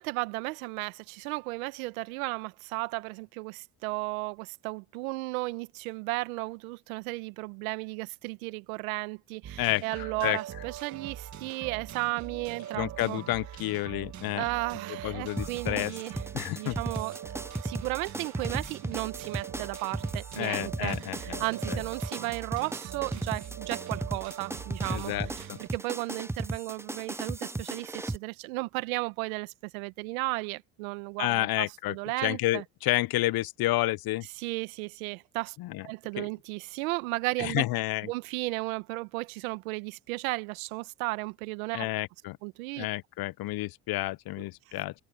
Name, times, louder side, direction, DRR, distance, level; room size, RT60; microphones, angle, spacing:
voice 1, 0.0-13.2 14.3-16.2 16.6-17.2 17.6-32.6 34.4-35.6 35.8-37.6 38.0-41.9 42.4-42.9 44.7-44.8, right 23 dB, 80° right, 1.5 m, -34 dB
sound 1, 9.4-25.7, right 10 dB, 45° right, 1.5 m, -42 dB
voice 2, 9.6-10.4 12.8-14.5 14.9-15.9 16.3-16.8 20.4-21.8 24.9-25.6 31.2-34.3 35.6-35.9 36.2-36.3 37.4-38.1 41.7-42.4 42.8-44.9, left 17 dB, 60° left, 0.9 m, -30 dB
sound 2, 15.4-28.2, right 2 dB, 5° right, 0.6 m, -36 dB
hypercardioid pair, 65°, 41 cm